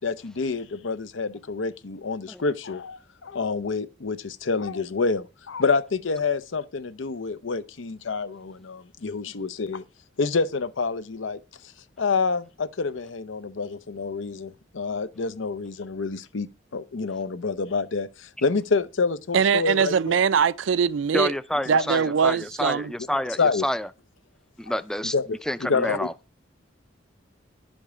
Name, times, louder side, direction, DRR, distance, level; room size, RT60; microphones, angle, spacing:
voice 1, 0.0-9.8 10.2-11.4 12.0-20.2 21.7-21.8 23.4-23.7 25.1-26.1, left 4 dB, 80° left, 0.7 m, -27 dB
voice 2, 19.3-21.3 21.7-22.9, right 6 dB, 75° right, 0.4 m, -22 dB
voice 3, 21.1-23.9 24.6-25.1 25.5-26.1, left 1 dB, 5° left, 0.4 m, -28 dB
10.5 x 5.3 x 4.9 m
head